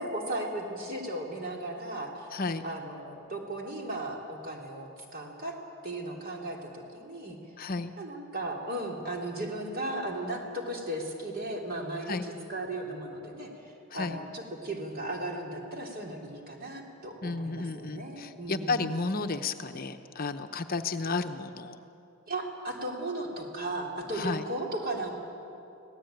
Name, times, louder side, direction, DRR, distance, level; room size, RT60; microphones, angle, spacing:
voice 1, 0.0-2.3 2.6-5.6 5.8-7.4 8.0-18.9 22.3-25.1, right 1 dB, 45° right, 0 dB, 3.3 m, -36 dB
voice 2, 2.3-2.6 7.6-7.9 12.1-12.3 13.9-14.2 17.2-21.8 24.1-24.4, left 3 dB, 40° left, 7 dB, 0.8 m, -32 dB
25.5 x 17.5 x 9.0 m, 2.9 s
head